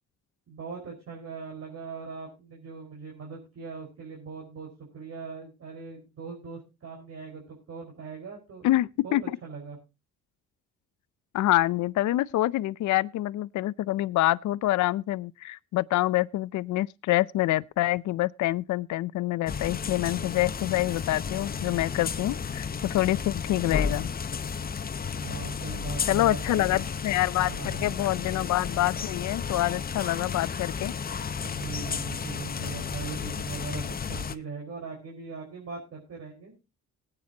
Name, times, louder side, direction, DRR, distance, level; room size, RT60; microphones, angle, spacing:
voice 1, 0.5-4.7 4.9-8.7 9.0-9.8 25.2-26.8 27.4-27.9 31.4-36.5, right 4 dB, 55° right, 5.0 m, -40 dB
voice 2, 8.6-9.2 11.3-24.1 26.1-30.9, left 16 dB, 70° left, 0.5 m, -26 dB
sound 1, 19.5-34.4, left 6 dB, 30° left, 0.7 m, -33 dB
19.0 x 8.9 x 2.8 m
cardioid pair, 90°, 30 cm